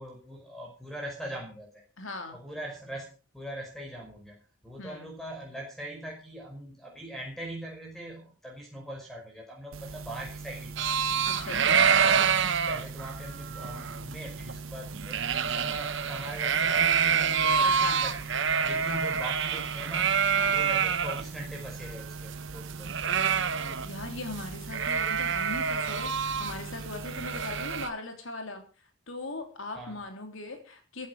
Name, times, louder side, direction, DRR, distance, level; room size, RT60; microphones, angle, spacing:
voice 1, 0.0-1.7 2.3-10.7 11.7-12.3 12.7-18.3 18.6-20.2 20.5-22.9 29.7-30.0, right 1 dB, ahead, 0 dB, 5.2 m, -41 dB
voice 2, 2.0-2.4 4.8-5.1 11.2-11.8 17.6-18.0 18.7-19.0 20.3-20.7 23.8-28.7 29.1-31.1, left 2 dB, 65° left, 5 dB, 3.5 m, -39 dB
sound 1, 9.7-27.8, right 4 dB, 80° right, 1.4 m, -42 dB
sound 2, 10.8-21.2 21.6-21.7 21.9-24.0 24.3-24.4 24.7-27.9, right 6 dB, 55° right, 1.1 m, -27 dB
15.5 x 12.5 x 5.0 m, 0.36 s
head